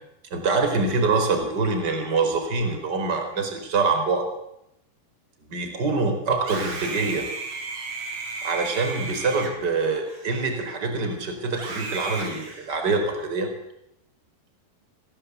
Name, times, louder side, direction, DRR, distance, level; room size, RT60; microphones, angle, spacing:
voice 1, 0.3-4.3 5.4-7.3 8.4-13.5, right 3 dB, 25° right, 5 dB, 4.7 m, -25 dB
Screaming, 6.4-10.9 11.5-13.2, right 3 dB, 45° right, 5.5 m, -35 dB
29.0 x 18.5 x 8.3 m, 0.83 s
omnidirectional pair, 4.8 m